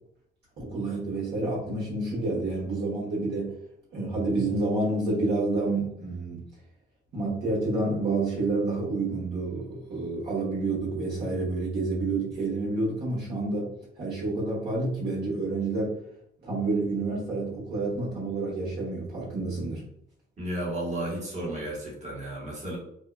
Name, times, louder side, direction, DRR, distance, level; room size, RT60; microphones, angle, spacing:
voice 1, 0.6-3.5 3.9-6.4 7.1-16.0 16.4-19.8, right 2 dB, 60° right, -6 dB, 1.0 m, -29 dB
voice 2, 20.4-22.8, right 1 dB, 35° right, -5 dB, 1.2 m, -33 dB
2.7 x 2.2 x 2.2 m, 0.73 s
cardioid pair, 90°, 20 cm